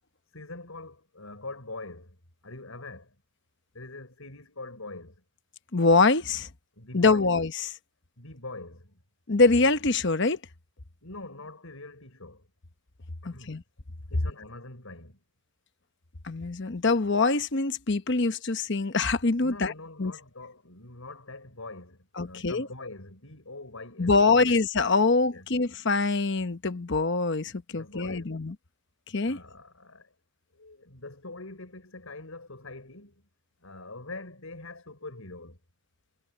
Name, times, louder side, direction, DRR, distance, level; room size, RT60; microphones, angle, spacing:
voice 1, 0.3-2.2 2.4-3.1 3.7-5.2 6.8-7.3 8.2-9.0 11.0-12.5 13.2-13.5 14.1-15.2 19.4-24.6 25.3-25.5 27.7-28.4 29.2-30.1 30.5-33.2 33.6-35.6, left 2 dB, 75° left, 5.0 m, -43 dB
voice 2, 5.7-6.5 6.9-7.7 9.3-10.4 13.2-13.6 16.2-19.7 20.0-20.1 22.2-22.7 24.0-28.5 29.1-29.4, left 3 dB, 55° left, 1.0 m, -24 dB
head